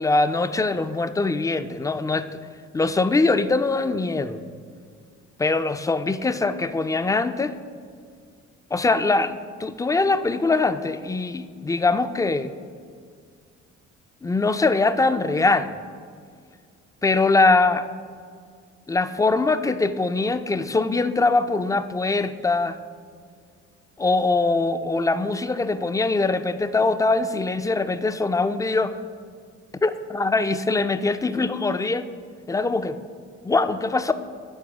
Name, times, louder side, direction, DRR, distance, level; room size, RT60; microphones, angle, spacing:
voice 1, 0.0-2.3 2.7-4.4 5.4-7.5 8.7-12.5 14.2-15.8 17.0-17.9 18.9-22.8 24.0-28.9 29.8-32.1 32.5-33.0 33.4-34.1, left 3 dB, 10° left, 11 dB, 0.3 m, -22 dB
8.9 x 4.9 x 5.9 m, 2.1 s
cardioid pair, 90°, 30 cm